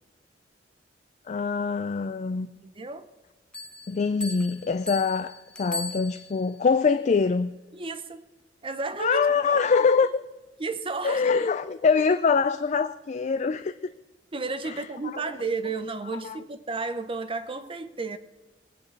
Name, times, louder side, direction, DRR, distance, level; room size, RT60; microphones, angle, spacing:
voice 1, 1.3-2.5 3.9-7.5 9.0-10.2 11.0-13.8 14.6-14.9 15.1-15.2 16.2-16.4, left 5 dB, 40° left, 0.4 m, -24 dB
voice 2, 2.6-3.1 7.7-8.3 8.6-9.3 9.5-9.6 10.6-11.5 14.3-18.2, right 4 dB, 30° right, 0.8 m, -32 dB
Bell, 3.5-6.6, left 2 dB, 5° left, 0.9 m, -38 dB
20.5 x 8.6 x 4.7 m
head